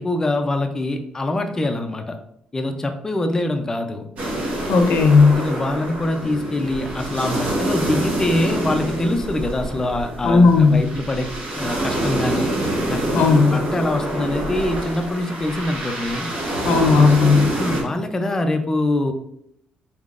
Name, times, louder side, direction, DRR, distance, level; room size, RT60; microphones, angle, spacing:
voice 1, 0.0-2.1 2.5-4.0 5.3-11.3 11.5-12.5 12.9-13.0 13.5-16.3 17.6-19.1, left 1 dB, 20° left, 5 dB, 0.5 m, -24 dB
sound 1, 4.2-17.8, right 1 dB, 60° right, 1.3 m, -26 dB
voice 2, 4.7-5.4 10.2-10.8 13.1-13.6 16.6-17.5, left 4 dB, 70° left, 4 dB, 0.7 m, -14 dB
4.4 x 3.7 x 2.4 m, 0.73 s
cardioid pair, 130°, 3 cm